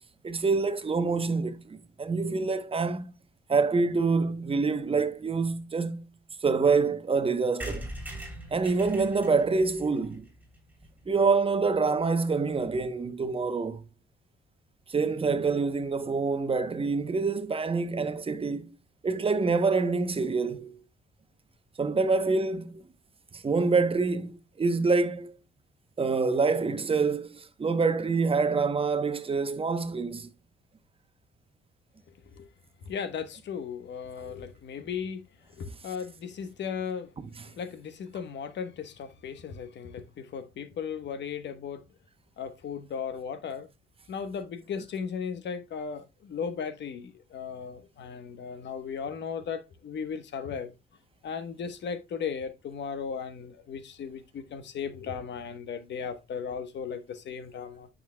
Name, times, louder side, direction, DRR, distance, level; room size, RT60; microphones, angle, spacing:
voice 1, 0.2-3.1 3.5-6.1 6.4-7.9 8.5-10.2 11.1-13.8 14.9-18.7 19.0-20.8 21.8-22.8 23.3-25.4 26.0-30.3 37.4-37.5, right 4 dB, 30° right, 0.9 m, -26 dB
sound 1, 7.6-11.3 11.7-11.8 12.0-12.1 12.3-12.4 12.6-12.9, right 1 dB, 10° right, 3.2 m, -42 dB
voice 2, 32.9-35.2 35.5-37.1 37.4-41.8 42.4-43.7 44.1-50.7 51.2-57.9, left 6 dB, 65° left, 1.1 m, -36 dB
9.2 x 6.5 x 2.2 m
cardioid pair, 90°, 20 cm